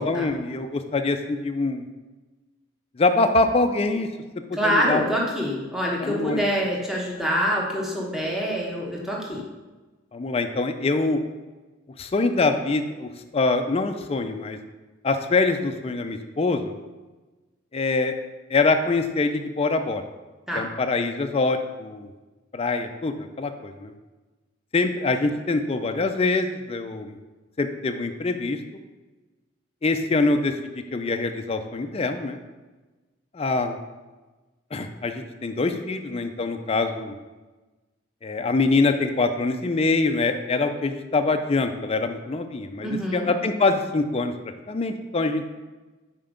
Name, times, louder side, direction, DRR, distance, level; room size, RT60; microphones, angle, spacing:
voice 1, 0.0-1.8 3.0-4.1 4.5-5.1 6.0-6.4 10.1-11.2 12.0-14.6 15.0-16.7 17.7-18.2 18.5-20.0 20.5-22.1 22.5-23.9 24.7-27.2 27.6-28.6 29.8-30.5 30.9-32.4 33.3-33.8 34.7-37.2 38.2-44.3 44.7-45.4, left 3 dB, 30° left, 7 dB, 0.4 m, -24 dB
voice 2, 4.5-9.4 20.5-20.6 42.8-43.3, equal, ahead, -3 dB, 1.1 m, -25 dB
5.7 x 4.5 x 5.1 m, 1.2 s
head